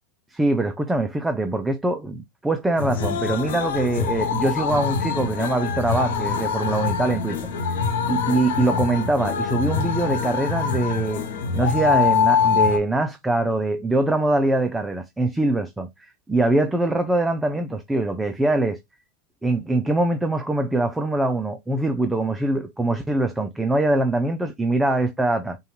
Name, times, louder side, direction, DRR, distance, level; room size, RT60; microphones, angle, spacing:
voice 1, 0.3-7.5 8.1-11.2 11.5-18.8 19.4-25.6, right 2 dB, 5° right, 0.5 m, -23 dB
taipei street karaoke, 2.8-12.8, left 6 dB, 80° left, 1.0 m, -24 dB
5.3 x 2.4 x 3.0 m
supercardioid pair, 140°, 0 cm